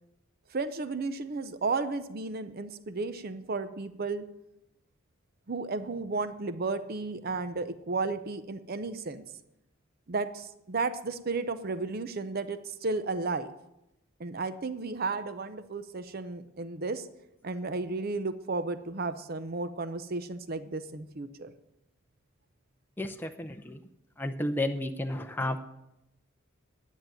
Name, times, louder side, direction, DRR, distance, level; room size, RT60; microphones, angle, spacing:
voice 1, 0.5-4.2 5.5-9.2 10.1-13.5 14.2-17.1 17.4-21.5, right 3 dB, 45° right, 12 dB, 0.6 m, -33 dB
voice 2, 23.0-23.8 24.2-25.6, left 1 dB, 10° left, 6 dB, 0.6 m, -32 dB
10.5 x 7.3 x 9.0 m, 0.87 s
head